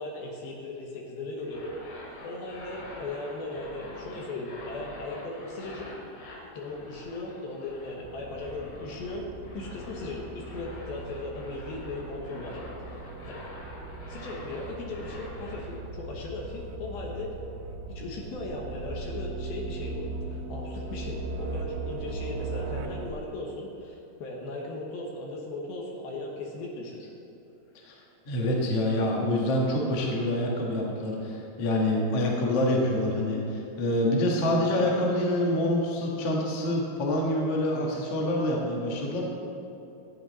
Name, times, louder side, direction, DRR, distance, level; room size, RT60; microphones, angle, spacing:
voice 1, 0.0-1.7 2.2-6.0 6.5-9.3 9.5-12.6 12.9-13.4 14.1-17.3 17.9-27.1, left 2 dB, 70° left, -1 dB, 2.8 m, -37 dB
sound 1, 1.4-15.8, left 1 dB, 90° left, 3.8 m, -46 dB
sound 2, 8.0-23.1, right 2 dB, 80° right, 2.3 m, -38 dB
voice 2, 28.3-39.2, left 1 dB, 50° left, -2 dB, 2.0 m, -26 dB
14.5 x 8.7 x 4.1 m, 2.8 s
omnidirectional pair, 4.7 m